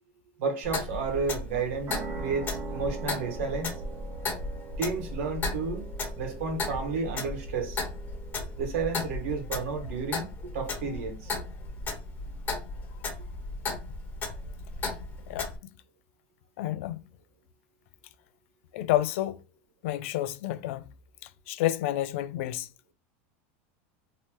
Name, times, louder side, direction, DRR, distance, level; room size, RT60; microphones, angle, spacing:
voice 1, 0.4-3.7 4.8-5.9 6.2-7.8 8.6-10.3 10.5-11.3, right 4 dB, 75° right, 1.1 m, -32 dB
Clock, 0.6-15.6, left 3 dB, 25° left, 1.2 m, -35 dB
sound 1, 1.9-9.1, right 6 dB, 35° right, 0.6 m, -43 dB
voice 2, 15.3-15.7 16.6-17.0 18.7-19.4 19.8-20.9 21.2-22.7, left 14 dB, 75° left, 0.4 m, -30 dB
2.8 x 2.2 x 3.0 m
supercardioid pair, 135°, 7 cm